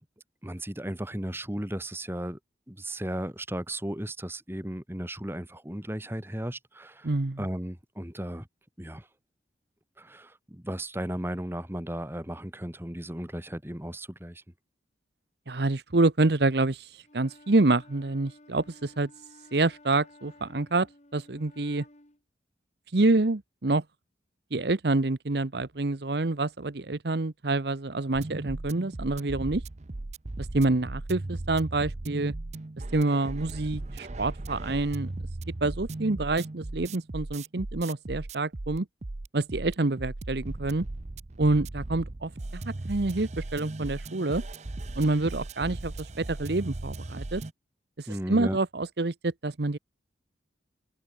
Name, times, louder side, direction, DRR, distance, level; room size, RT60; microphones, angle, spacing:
voice 1, 0.4-2.4 2.7-7.1 7.4-8.5 8.8-9.1 10.0-14.4 48.1-48.6, right 1 dB, 15° right, 2.2 m, -35 dB
voice 2, 7.0-7.5 15.5-19.1 19.5-20.9 21.1-21.8 22.9-23.8 24.5-29.6 30.4-32.3 32.9-35.1 35.6-38.9 39.3-40.9 41.4-44.4 45.0-47.4 48.0-49.8, right 2 dB, 60° right, 0.9 m, -27 dB
Wind instrument woodwind instrument, 17.0-22.2, left 1 dB, 40° left, 3.2 m, -55 dB
sound 1, 28.1-47.5, right 2 dB, 40° right, 0.7 m, -37 dB
head